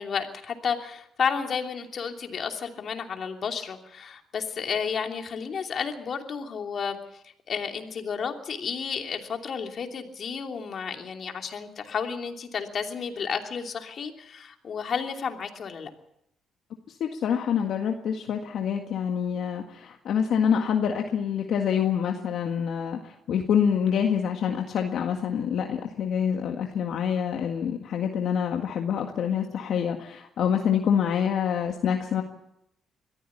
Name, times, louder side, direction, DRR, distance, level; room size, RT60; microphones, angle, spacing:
voice 1, 0.0-7.0 7.2-15.9, left 6 dB, 55° left, 4 dB, 2.9 m, -32 dB
voice 2, 16.9-32.2, left 8 dB, 70° left, 3 dB, 1.8 m, -26 dB
22.5 x 14.5 x 8.6 m, 0.79 s
cardioid pair, 90°, 0 cm